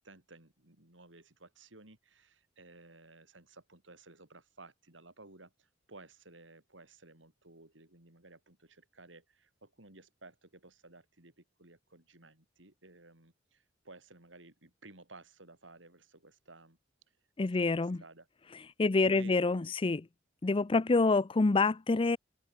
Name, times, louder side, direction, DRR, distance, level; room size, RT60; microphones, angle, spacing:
voice 1, 0.0-5.5 5.9-16.8 17.4-18.3 19.0-19.7, right 2 dB, 85° right, 5.1 m, -55 dB
voice 2, 17.4-18.0 18.8-20.1 20.4-22.2, left 3 dB, 30° left, 0.5 m, -27 dB
open air
head